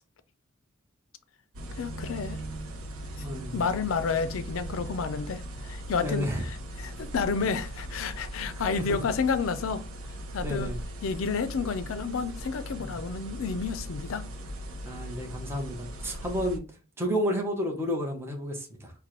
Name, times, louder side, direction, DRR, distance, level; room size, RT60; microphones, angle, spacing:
sound 1, 1.5-16.6, right 1 dB, 90° right, 0.7 m, -39 dB
voice 1, 1.8-2.4 3.5-9.8 10.3-10.7 11.0-14.3, left 5 dB, 70° left, 0.4 m, -30 dB
voice 2, 3.2-3.6 6.0-6.4 8.9-9.0 10.4-10.8 12.8-13.0 14.8-16.6 17.0-18.9, equal, 10° right, 0.8 m, -31 dB
4.3 x 2.2 x 3.0 m
head